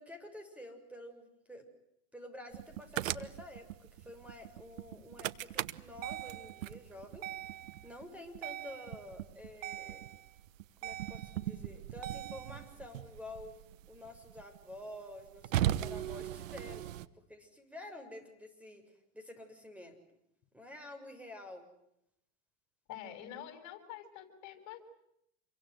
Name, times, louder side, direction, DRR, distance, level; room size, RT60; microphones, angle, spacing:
voice 1, 0.0-1.7 2.1-7.3 7.8-10.1 10.8-13.6 13.9-16.9 17.1-20.0 20.5-21.7, left 1 dB, 5° right, 6 dB, 6.9 m, -49 dB
sound 1, 2.5-17.1, right 13 dB, 90° right, 1.3 m, -39 dB
voice 2, 22.9-24.8, left 10 dB, 50° left, 8 dB, 7.6 m, -47 dB
28.5 x 24.0 x 7.9 m, 0.80 s
supercardioid pair, 120°, 38 cm